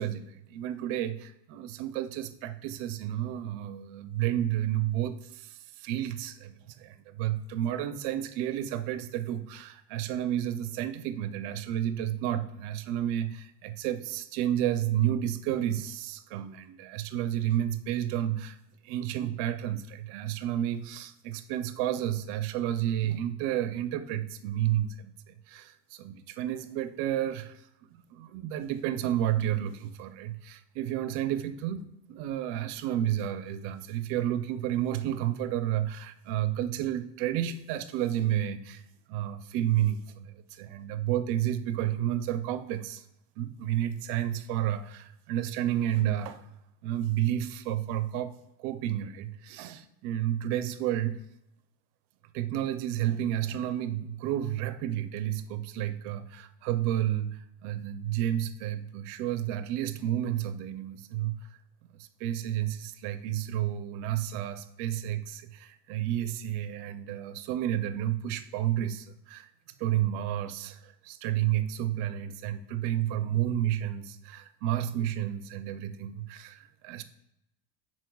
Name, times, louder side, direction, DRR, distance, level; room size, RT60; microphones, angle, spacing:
voice 1, 0.0-18.6 18.8-43.0 43.4-46.5 46.8-51.2 52.3-61.5 62.0-69.5 69.8-77.0, right 11 dB, 80° right, 11 dB, 0.6 m, -31 dB
10.5 x 4.4 x 2.3 m, 0.85 s
cardioid pair, 165°, 41 cm